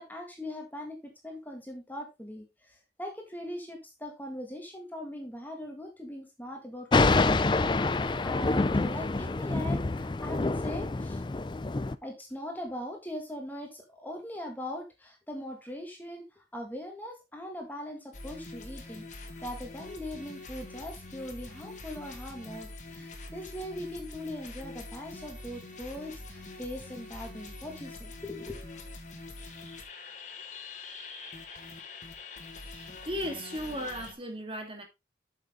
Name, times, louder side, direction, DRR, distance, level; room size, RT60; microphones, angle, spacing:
voice 1, 0.0-11.2 12.0-28.6, left 1 dB, 10° left, 1.8 m, -41 dB
Thunder, 6.9-11.9, left 3 dB, 25° left, 0.4 m, -27 dB
sound 1, 18.1-34.1, left 3 dB, 40° left, 1.8 m, -44 dB
voice 2, 32.6-34.8, equal, 30° right, 2.1 m, -36 dB
8.1 x 6.7 x 3.7 m
head